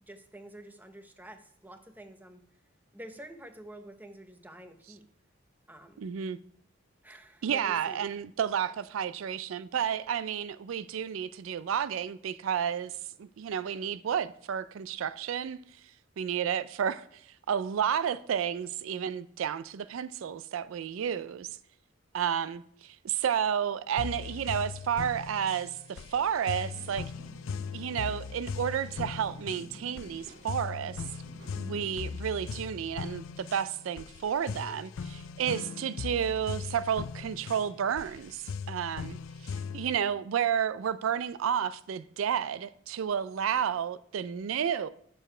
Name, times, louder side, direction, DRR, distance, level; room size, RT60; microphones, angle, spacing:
voice 1, 0.1-2.4 2.9-5.0 5.7-6.0 7.0-8.1, right 1 dB, 10° right, 0.8 m, -48 dB
voice 2, 6.0-6.4 7.4-12.9 13.2-15.6 16.2-17.0 17.5-21.5 22.1-27.0 27.7-31.0 31.5-39.2 39.4-44.9, right 8 dB, 80° right, 0.4 m, -31 dB
sound 1, 24.0-40.0, left 5 dB, 85° left, 0.4 m, -39 dB
sound 2, 26.5-32.9, right 1 dB, 55° right, 0.9 m, -53 dB
9.1 x 6.9 x 3.2 m
head